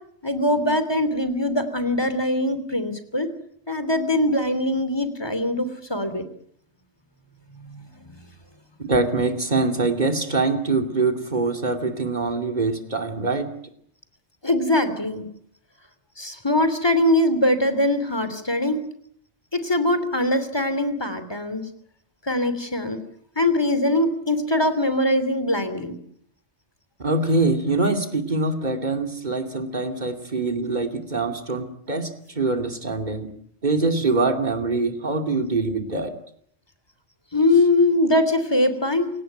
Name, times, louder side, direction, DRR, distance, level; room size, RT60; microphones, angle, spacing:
voice 1, 0.2-3.3 3.7-6.2 7.6-7.8 8.1-8.2 14.4-15.3 16.2-18.8 19.5-21.6 22.3-23.0 23.4-26.0 37.3-39.1, left 1 dB, 20° left, 11 dB, 3.1 m, -22 dB
voice 2, 8.8-13.5 27.0-33.3 33.6-36.1, right 3 dB, 40° right, 6 dB, 2.9 m, -24 dB
28.5 x 18.0 x 9.0 m, 0.69 s
omnidirectional pair, 1.1 m